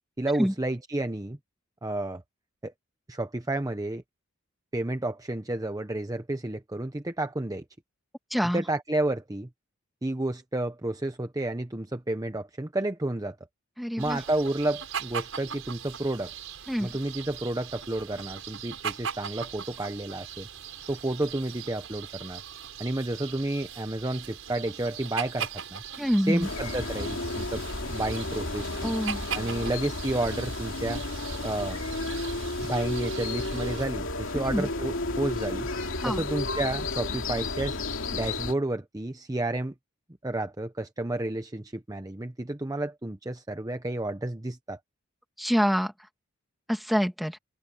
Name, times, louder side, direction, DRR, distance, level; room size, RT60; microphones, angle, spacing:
voice 1, 0.2-1.4 1.8-2.2 2.6-2.7 3.1-4.0 4.7-7.6 8.5-9.5 10.0-13.4 14.0-16.3 16.8-20.5 20.9-22.4 22.8-25.8 26.3-28.9 29.3-31.0 31.4-31.8 32.6-35.7 36.0-37.8 38.1-39.7 40.2-44.8, right 1 dB, 15° right, 0.8 m, -31 dB
voice 2, 8.3-8.6 13.8-14.2 16.7-16.9 26.0-26.5 28.8-29.2 34.3-34.7 36.0-36.2 45.4-45.9 46.7-47.4, equal, ahead, 2.1 m, -26 dB
sound 1, 14.0-33.9, right 8 dB, 75° right, 5.6 m, -40 dB
sound 2, 26.4-38.5, left 2 dB, 70° left, 2.9 m, -32 dB
open air
head